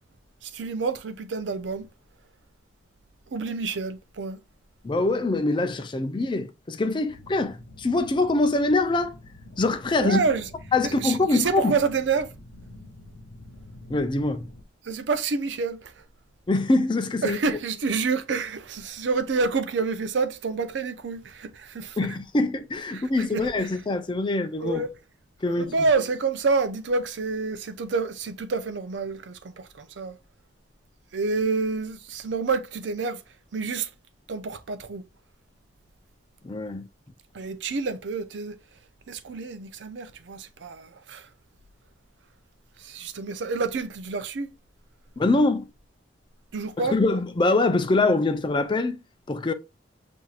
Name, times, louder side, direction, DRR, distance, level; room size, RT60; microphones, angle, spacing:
voice 1, 0.4-1.9 3.3-4.4 10.0-10.5 10.8-12.3 14.8-15.9 17.2-22.0 22.9-23.7 24.6-24.9 25.6-30.2 31.1-33.2 33.5-33.9 34.3-35.0 37.3-38.6 39.1-41.3 42.8-44.5 46.5-47.0, right 4 dB, 70° right, 0.5 m, -28 dB
voice 2, 4.8-9.2 9.6-10.2 10.7-11.8 13.9-14.5 16.5-17.4 22.0-24.8 25.4-25.7 36.4-36.9 45.2-45.7 46.8-49.0 49.3-49.5, left 2 dB, 25° left, 0.4 m, -24 dB
sound 1, 7.1-14.6, left 1 dB, 75° left, 0.7 m, -46 dB
5.6 x 2.6 x 2.4 m
head